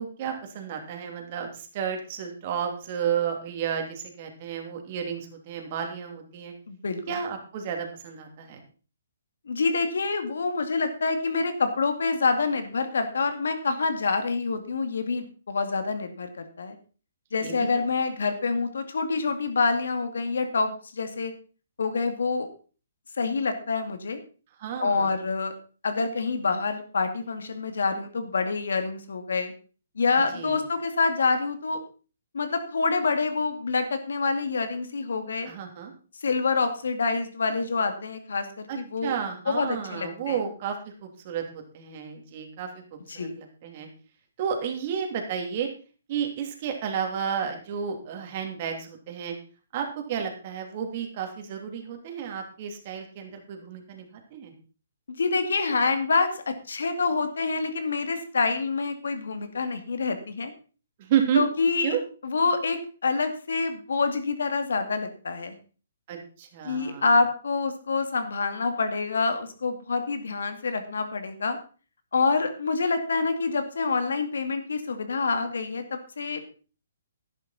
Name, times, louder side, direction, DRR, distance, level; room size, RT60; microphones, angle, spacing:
voice 1, 0.0-6.5 7.1-8.6 17.4-17.9 24.6-25.1 30.3-30.6 35.4-35.9 38.7-43.9 44.4-45.7 46.1-49.3 49.7-54.5 61.0-61.4 61.8-62.0 66.1-67.1, right 8 dB, 40° right, 3 dB, 2.9 m, -32 dB
voice 2, 6.7-7.1 9.5-16.8 17.3-21.3 21.8-22.5 23.2-24.2 24.8-25.5 25.8-29.5 30.0-31.8 32.3-35.5 36.2-39.1 39.5-40.4 43.1-43.4 55.1-60.5 61.3-62.0 62.2-65.5 66.6-71.6 72.1-76.4, left 4 dB, 80° left, 8 dB, 2.3 m, -27 dB
11.0 x 11.0 x 4.2 m, 0.37 s
hypercardioid pair, 150°, 0 cm